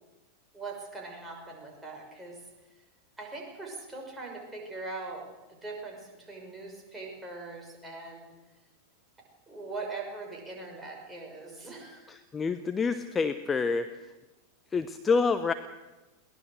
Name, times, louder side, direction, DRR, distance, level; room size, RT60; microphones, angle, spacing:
voice 1, 0.5-2.4 3.2-8.3 9.5-12.1, right 3 dB, 10° right, 0 dB, 6.1 m, -41 dB
voice 2, 12.1-14.0 14.7-15.5, left 4 dB, 15° left, 10 dB, 0.8 m, -27 dB
22.0 x 18.5 x 6.6 m, 1.1 s
figure-of-eight pair, 90°, 0 cm